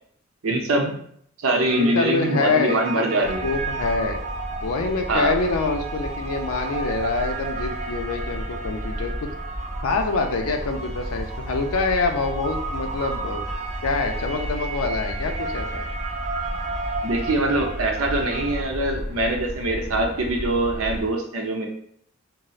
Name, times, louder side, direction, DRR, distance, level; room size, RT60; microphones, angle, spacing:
voice 1, 0.4-1.0 1.4-3.5 5.1-5.4 17.0-21.7, right 1 dB, 75° right, 2 dB, 0.6 m, -23 dB
sound 1, 1.7-18.6, right 4 dB, 35° right, 0.4 m, -34 dB
voice 2, 1.8-4.2 4.6-9.3 9.8-13.4 13.8-15.8, left 3 dB, 85° left, 5 dB, 0.5 m, -26 dB
sound 2, 3.2-21.1, equal, 10° left, 0.7 m, -33 dB
4.0 x 2.0 x 2.4 m, 0.65 s
head